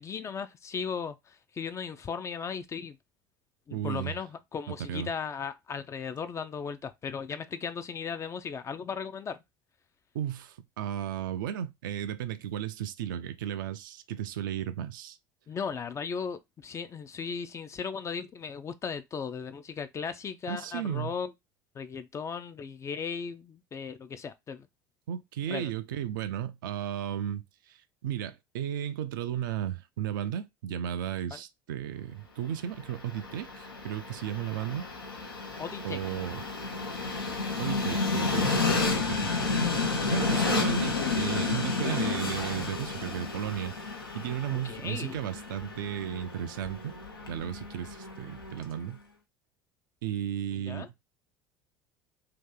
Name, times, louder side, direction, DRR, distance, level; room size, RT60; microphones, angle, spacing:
voice 1, 0.0-3.0 3.7-9.4 15.5-21.3 21.7-24.7 25.5-25.7 31.3-31.4 35.6-36.0 39.6-39.7 40.3-40.4 44.6-45.2 50.7-51.1, left 6 dB, 25° left, 0.4 m, -37 dB
voice 2, 3.7-4.1 4.7-5.1 10.1-15.2 20.5-21.2 25.1-34.8 35.8-36.4 37.6-38.7 39.0-39.3 39.9-43.7 44.1-46.9 47.3-49.0 50.0-51.1, right 10 dB, 60° right, 0.4 m, -34 dB
Train, 32.7-48.8, left 3 dB, 80° left, 0.7 m, -31 dB
2.8 x 2.6 x 3.7 m
figure-of-eight pair, 70°, 12 cm